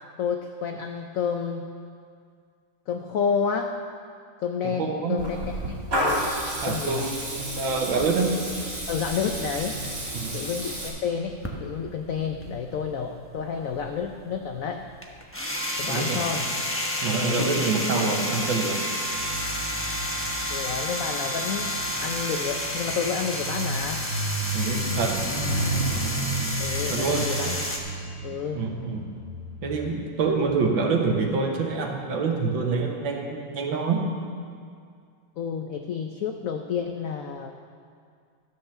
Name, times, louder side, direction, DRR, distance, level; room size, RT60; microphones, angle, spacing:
voice 1, 0.2-1.7 2.9-3.8 4.4-6.3 6.6-7.1 8.9-9.8 10.3-14.9 15.8-16.5 17.1-17.6 20.5-21.7 22.0-24.1 26.6-27.6 28.2-28.7 35.4-37.5, left 6 dB, 80° left, 5 dB, 0.7 m, -30 dB
voice 2, 4.6-5.2 6.6-8.3 10.1-10.4 15.8-16.2 17.0-18.8 24.5-25.1 26.9-27.3 28.5-29.1 29.6-34.0, right 4 dB, 80° right, 2 dB, 1.9 m, -26 dB
Water tap faucet / Liquid, 5.2-10.9, right 1 dB, 60° right, 3.6 m, -31 dB
sound 1, 11.3-13.1 13.4-27.8, left 1 dB, 10° left, 0.6 m, -30 dB
sound 2, 19.0-30.7 31.4-31.7, right 1 dB, 35° right, 1.6 m, -33 dB
13.0 x 6.2 x 6.9 m, 2.2 s
omnidirectional pair, 2.1 m